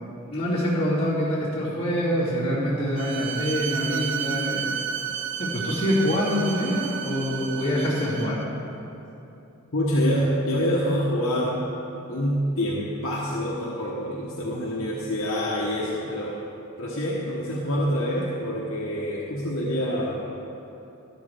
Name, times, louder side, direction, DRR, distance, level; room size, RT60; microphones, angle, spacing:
voice 1, 0.0-4.8 5.4-8.4, equal, 30° left, -11 dB, 2.7 m, -25 dB
Bowed string instrument, 3.0-8.5, right 8 dB, 60° right, 0.6 m, -32 dB
voice 2, 9.7-11.6 12.1-16.4 16.8-20.2, equal, 70° left, -5 dB, 1.1 m, -26 dB
12.5 x 11.5 x 3.5 m, 2.9 s
head